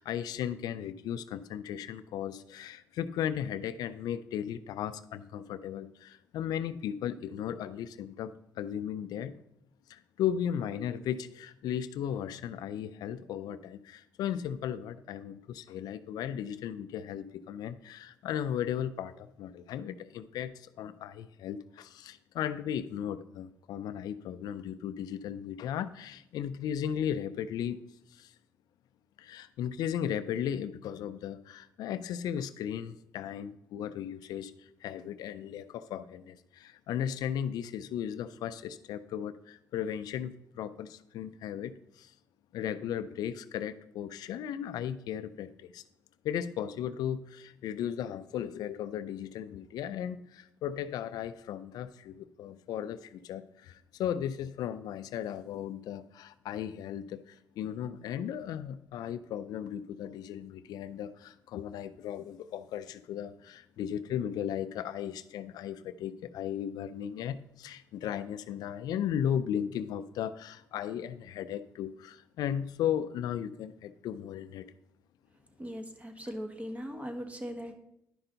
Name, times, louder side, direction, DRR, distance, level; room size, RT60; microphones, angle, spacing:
voice 1, 0.0-9.3 9.9-27.8 28.1-28.3 29.2-42.1 42.5-45.8 46.2-74.7, left 9 dB, 85° left, 13 dB, 0.4 m, -36 dB
voice 2, 75.6-77.7, equal, 20° right, 5 dB, 1.4 m, -39 dB
11.0 x 5.6 x 3.9 m, 0.81 s
cardioid pair, 75°, 7 cm